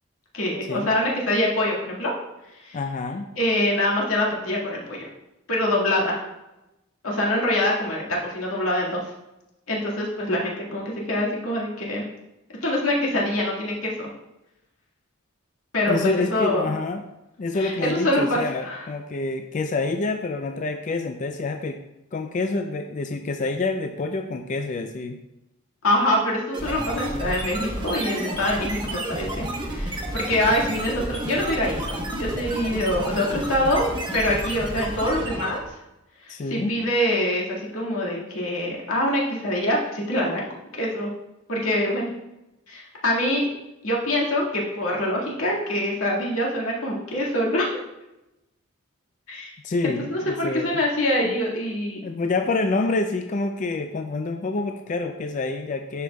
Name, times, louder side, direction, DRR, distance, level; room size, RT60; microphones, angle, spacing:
voice 1, 0.3-2.1 2.6-2.8 3.4-5.1 5.5-6.2 7.0-9.0 9.7-12.0 12.6-14.1 15.7-16.6 17.5-18.8 25.8-35.6 36.2-40.5 40.8-41.1 41.5-42.1 42.7-43.5 43.8-47.7 49.3-49.5 50.1-52.0, left 1 dB, 90° left, -3 dB, 1.9 m, -25 dB
voice 2, 2.7-3.3 15.9-17.1 17.4-21.8 22.1-25.2 36.3-36.8 49.6-50.8 51.2-51.4 52.0-56.0, left 3 dB, 35° left, 5 dB, 0.3 m, -27 dB
sound 1, 26.5-35.7, right 1 dB, 20° right, 0.9 m, -31 dB
11.0 x 5.1 x 2.3 m, 0.95 s
head